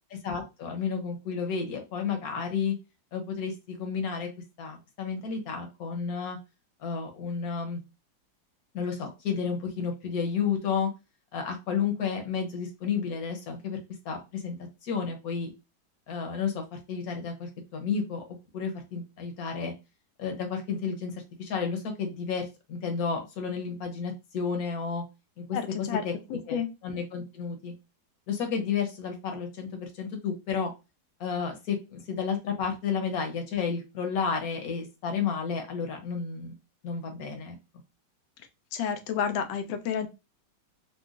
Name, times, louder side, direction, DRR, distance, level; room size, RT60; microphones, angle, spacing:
voice 1, 0.1-2.7 3.1-4.3 4.6-6.4 6.8-7.8 8.7-10.9 11.3-13.8 14.0-14.6 14.8-15.5 16.1-18.2 18.5-19.7 20.2-21.1 21.4-25.0 25.4-25.6 26.0-26.1 26.5-27.7 28.3-30.7 31.2-36.5 36.8-37.6, left 6 dB, 60° left, 1.1 m, -31 dB
voice 2, 25.5-26.0 26.3-26.7 38.7-40.1, left 7 dB, 85° left, 1.4 m, -30 dB
3.8 x 2.2 x 2.4 m
omnidirectional pair, 2.1 m